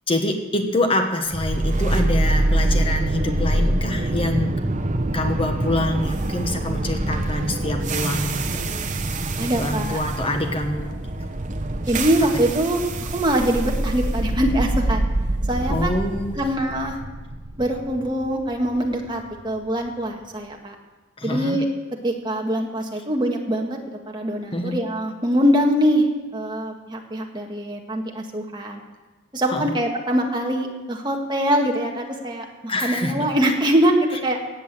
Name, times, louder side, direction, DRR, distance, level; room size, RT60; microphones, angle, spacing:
voice 1, 0.1-4.5 5.1-8.7 9.6-11.0 15.7-16.4 21.2-21.6 24.5-24.8 29.5-29.7 32.7-33.3, left 1 dB, 25° left, 4 dB, 1.3 m, -25 dB
sound 1, 1.3-19.4, right 1 dB, 40° right, 0.9 m, -25 dB
voice 2, 9.4-10.0 11.9-12.8 13.1-15.1 15.5-16.0 16.4-17.0 17.6-20.7 21.2-21.7 22.0-23.8 24.1-28.8 29.3-34.4, equal, 20° right, 1 dB, 1.7 m, -23 dB
15.5 x 8.7 x 7.5 m, 1.2 s
head